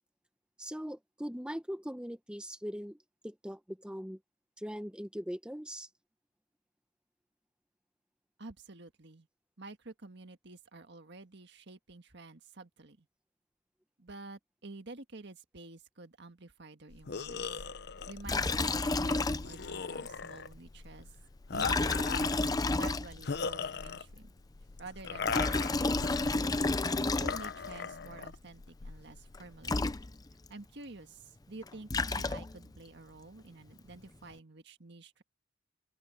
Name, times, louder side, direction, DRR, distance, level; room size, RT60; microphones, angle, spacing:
voice 1, 0.6-3.0 3.2-4.2 4.6-5.9, equal, 5° right, 1.1 m, -40 dB
voice 2, 8.4-9.3 9.6-13.1 14.0-17.6 18.1-21.1 21.5-24.3 24.8-26.4 26.9-29.9 30.5-35.2, right 3 dB, 60° right, 1.7 m, -49 dB
sound 1, 16.9-30.0, left 5 dB, 55° left, 0.7 m, -39 dB
Liquid, 18.2-19.8 20.1-20.2 21.5-23.4 25.1-27.7 29.3-29.4 29.6-30.5 31.6-32.7, left 3 dB, 20° left, 0.6 m, -31 dB
open air
head